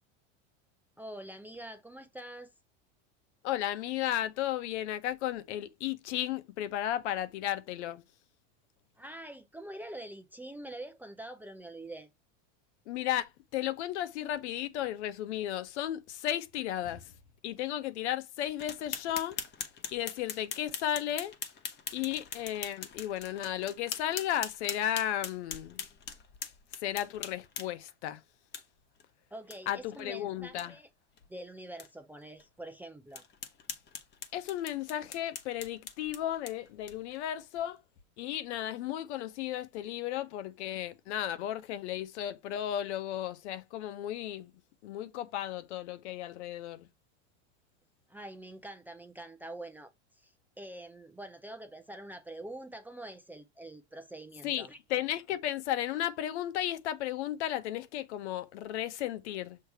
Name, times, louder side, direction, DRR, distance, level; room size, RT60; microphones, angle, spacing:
voice 1, 1.0-2.5 9.0-12.1 29.3-30.9 31.3-33.2 48.1-54.8, right 1 dB, 5° right, 0.5 m, -45 dB
voice 2, 3.4-8.0 12.9-17.1 17.4-19.4 19.9-21.3 21.9-25.8 26.8-28.2 29.7-30.8 34.3-37.8 38.2-44.5 44.8-46.9 54.4-59.6, left 12 dB, 70° left, 1.0 m, -34 dB
sound 1, 18.6-27.9 28.5-28.6 29.0-29.1 29.5-29.6 29.9-30.0 30.4-30.7 31.2-31.3 31.8-31.9 32.4-32.5 33.1-37.2, left 7 dB, 30° left, 1.1 m, -42 dB
6.7 x 3.2 x 4.5 m
supercardioid pair, 145°, 36 cm